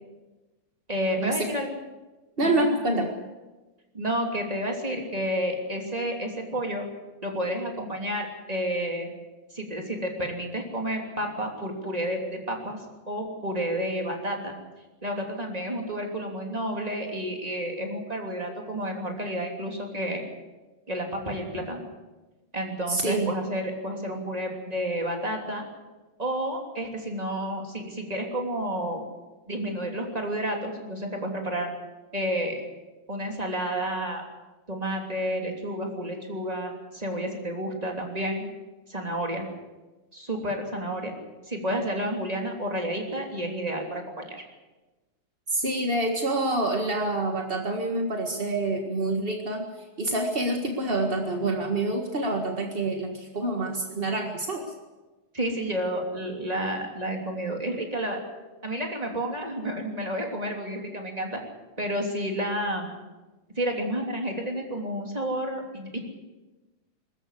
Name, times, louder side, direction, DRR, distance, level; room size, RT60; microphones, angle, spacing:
voice 1, 0.9-1.8 2.4-2.8 3.9-6.8 7.2-9.1 9.5-14.5 15.0-20.3 20.9-21.8 22.5-25.6 26.2-29.0 29.5-31.7 32.1-32.6 33.1-34.2 34.7-38.4 38.9-39.4 40.1-41.1 41.5-44.4 55.3-58.2 58.6-61.4 61.8-62.9 63.6-66.0, equal, 10° right, 2 dB, 2.8 m, -30 dB
voice 2, 2.4-3.1 22.9-23.3 45.5-49.6 50.0-54.6, right 2 dB, 40° right, 3 dB, 0.8 m, -27 dB
23.0 x 13.5 x 8.4 m, 1.2 s
omnidirectional pair, 3.9 m